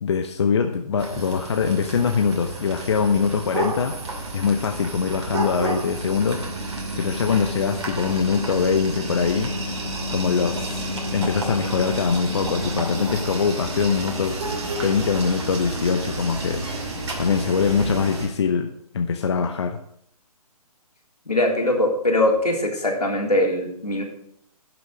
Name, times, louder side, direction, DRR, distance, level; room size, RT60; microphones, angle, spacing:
voice 1, 0.0-3.9 4.3-6.4 7.0-9.5 10.1-10.8 11.1-14.4 14.8-16.7 17.2-18.7 18.9-19.8, left 6 dB, 45° left, 5 dB, 0.8 m, -23 dB
sound 1, 1.0-18.3, right 1 dB, 50° right, 2.4 m, -30 dB
voice 2, 21.3-24.0, left 1 dB, 80° left, 0 dB, 3.4 m, -21 dB
11.5 x 6.2 x 6.5 m, 0.69 s
figure-of-eight pair, 140°, 20 cm